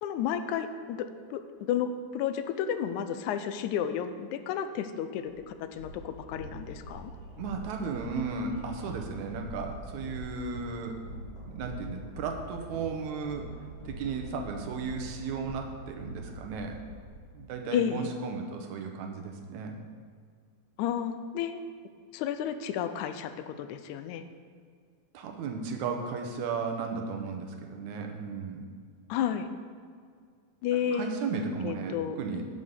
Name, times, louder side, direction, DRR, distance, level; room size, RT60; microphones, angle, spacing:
voice 1, 0.0-7.1 17.7-18.1 20.8-21.6 22.1-24.2 29.1-29.5 30.6-31.1 31.6-32.2, left 9 dB, 90° left, 10 dB, 2.0 m, -32 dB
sound 1, 5.2-5.3 5.7-17.1, equal, 55° left, 2.4 m, -43 dB
voice 2, 7.4-11.0 11.5-13.5 13.9-16.8 17.3-19.8 25.1-28.6 30.9-32.5, right 5 dB, 80° right, 3 dB, 2.2 m, -35 dB
7.9 x 5.5 x 6.6 m, 2.1 s
omnidirectional pair, 3.4 m